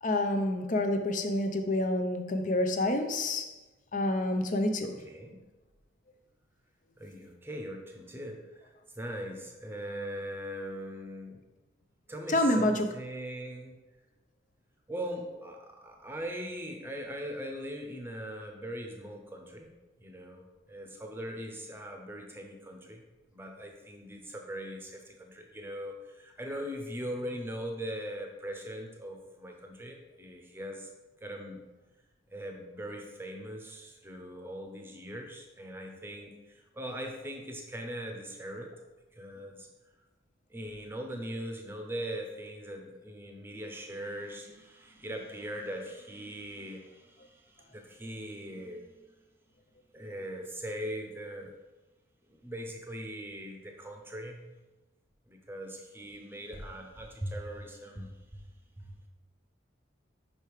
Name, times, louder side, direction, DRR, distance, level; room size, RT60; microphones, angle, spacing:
voice 1, 0.0-3.5 3.9-4.9 12.3-12.8, left 1 dB, 40° left, 6 dB, 0.6 m, -28 dB
voice 2, 4.8-5.4 7.0-11.4 12.1-13.8 14.9-19.7 20.0-23.0 23.3-30.9 31.2-31.7 32.3-38.7 39.1-39.7 40.5-48.9 49.9-51.5 52.3-54.6 55.3-58.4 58.8-59.1, equal, 10° right, 2 dB, 0.8 m, -40 dB
5.5 x 5.2 x 4.8 m, 1.1 s
head